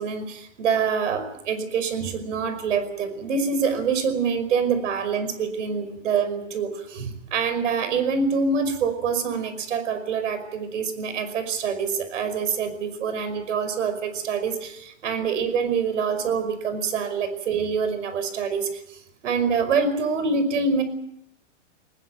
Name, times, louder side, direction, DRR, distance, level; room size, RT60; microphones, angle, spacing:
voice 1, 0.0-20.8, right 5 dB, 75° right, 11 dB, 5.4 m, -26 dB
20.0 x 19.0 x 9.3 m, 0.81 s
hypercardioid pair, 150°, 37 cm